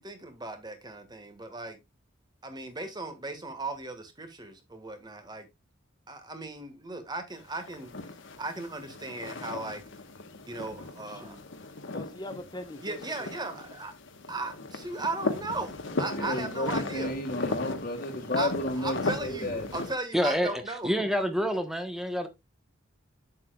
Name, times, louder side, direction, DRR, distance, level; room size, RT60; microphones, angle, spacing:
voice 1, 0.0-1.8 2.4-5.5 6.1-7.9 8.4-9.8 10.5-11.4 12.8-13.9 14.3-17.1 17.5-17.6 18.4-20.9, right 2 dB, 20° right, 1.6 m, -37 dB
sound 1, 7.3-19.9, left 2 dB, 65° left, 1.2 m, -37 dB
voice 2, 11.9-13.3, left 1 dB, 20° left, 1.2 m, -42 dB
voice 3, 16.0-19.7, left 1 dB, 45° left, 1.8 m, -32 dB
voice 4, 20.1-22.3, equal, ahead, 1.1 m, -28 dB
8.3 x 7.5 x 2.3 m
head